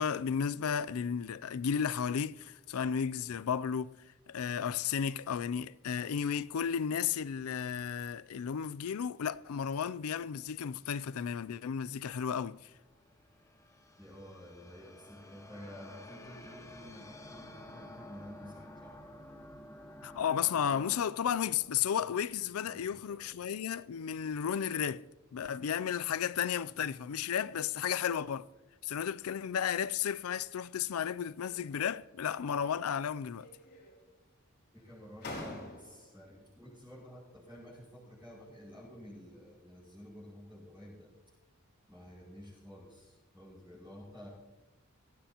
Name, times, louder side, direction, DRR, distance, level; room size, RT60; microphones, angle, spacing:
voice 1, 0.0-3.9 4.3-12.6 20.0-25.0 25.3-28.5 28.8-33.5, left 8 dB, 80° left, 0.4 m, -33 dB
sound 1, 12.7-23.0, left 1 dB, 15° left, 1.1 m, -52 dB
voice 2, 14.0-19.0 22.6-23.4 34.7-41.1 41.9-44.3, equal, 10° right, 5.6 m, -51 dB
sound 2, 31.4-32.0 32.3-33.1 33.4-34.2 34.8-34.9 35.2-36.2, left 1 dB, 55° left, 4.3 m, -47 dB
19.0 x 15.5 x 2.9 m
head